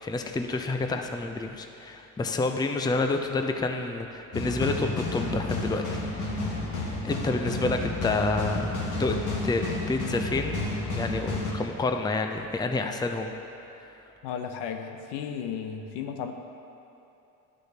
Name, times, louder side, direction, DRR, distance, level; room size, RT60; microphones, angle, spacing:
voice 1, 0.0-5.8 6.1-6.5 7.0-9.2 9.4-10.6 10.9-13.3, left 3 dB, 10° left, 4 dB, 0.5 m, -29 dB
sound 1, 4.3-11.5, left 2 dB, 45° left, 1.8 m, -31 dB
voice 2, 14.2-16.3, left 7 dB, 65° left, 6 dB, 0.8 m, -34 dB
12.0 x 6.4 x 2.8 m, 2.9 s
hypercardioid pair, 65°, 43 cm